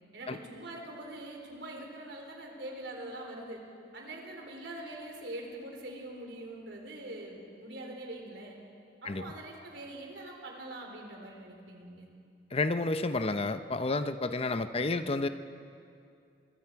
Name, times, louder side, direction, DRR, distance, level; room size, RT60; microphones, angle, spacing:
voice 1, 0.1-3.6 3.9-8.6 9.0-12.1, right 1 dB, 90° right, 1 dB, 4.0 m, -43 dB
voice 2, 12.5-15.3, left 3 dB, 35° left, 10 dB, 0.8 m, -30 dB
24.0 x 23.5 x 4.7 m, 2.5 s
head